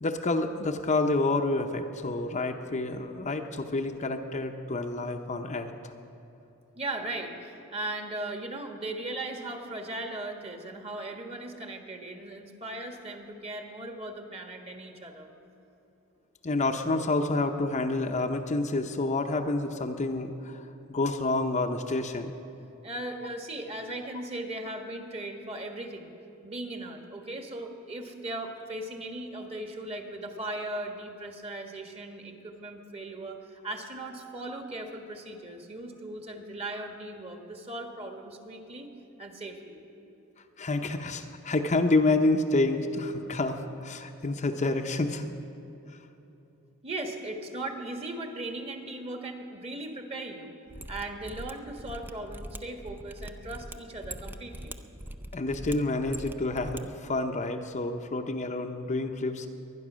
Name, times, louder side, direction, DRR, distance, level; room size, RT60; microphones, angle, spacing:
voice 1, 0.0-5.7 16.4-20.6 20.9-22.4 40.6-45.2 55.3-59.5, left 2 dB, 35° left, 4 dB, 0.7 m, -28 dB
voice 2, 6.7-15.3 22.8-26.1 26.4-38.9 39.2-39.8 46.8-50.5 50.9-54.8, right 2 dB, 30° right, 4 dB, 1.5 m, -38 dB
Mechanisms, 50.7-56.8 57.1-57.2, right 1 dB, 10° right, 0.5 m, -42 dB
23.0 x 10.0 x 6.2 m, 2.9 s
head